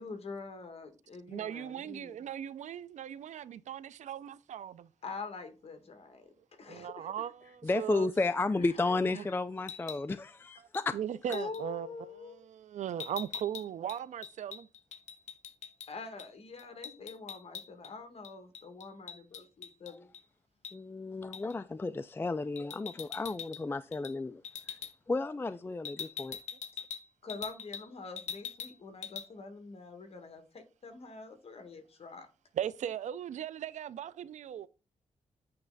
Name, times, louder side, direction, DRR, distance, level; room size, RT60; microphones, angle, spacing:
voice 1, 0.0-2.2 5.0-6.3 6.6-7.1 8.6-9.3 11.3-12.4 12.8-12.9 15.9-20.1 27.2-32.3, left 4 dB, 55° left, 1.7 m, -45 dB
voice 2, 1.3-4.9 6.7-8.1 9.0-9.3 10.6-11.9 12.2-14.7 32.5-34.7, right 10 dB, 90° right, 0.4 m, -38 dB
voice 3, 7.6-10.9 20.7-24.4 25.1-26.4, left 3 dB, 20° left, 0.3 m, -32 dB
sound 1, 9.6-10.1 10.7-10.9 11.3-11.6 13.0-15.9 16.2-16.3 16.6-17.9 18.2-20.2 20.6-20.8 21.3-21.6 22.6-23.6 23.9-24.2 24.4-24.9 25.8-27.9 28.2-28.8 29.0-29.3, left 7 dB, 80° left, 0.6 m, -43 dB
8.7 x 3.2 x 3.9 m
wide cardioid pair, 95°, 12 cm